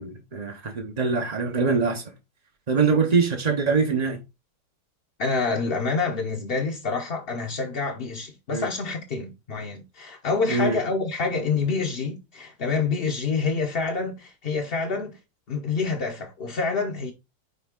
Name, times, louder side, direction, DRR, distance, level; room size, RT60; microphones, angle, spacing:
voice 1, 0.0-2.0 2.7-4.2 8.5-8.7 10.5-10.8, right 4 dB, 40° right, 0.5 m, -23 dB
voice 2, 5.2-15.2 15.5-17.1, left 4 dB, 45° left, 0.8 m, -27 dB
9.5 x 3.4 x 3.7 m
omnidirectional pair, 2.0 m